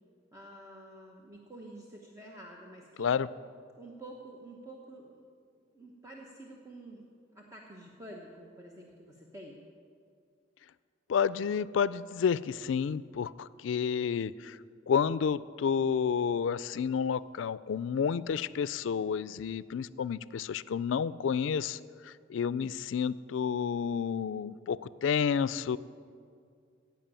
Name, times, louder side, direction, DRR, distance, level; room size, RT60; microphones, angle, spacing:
voice 1, 0.3-3.1 3.8-5.3 5.7-9.6, right 1 dB, 15° right, -2 dB, 1.0 m, -49 dB
voice 2, 11.1-14.6 14.9-25.8, left 7 dB, 80° left, 17 dB, 0.3 m, -30 dB
16.0 x 5.9 x 8.9 m, 2.3 s
head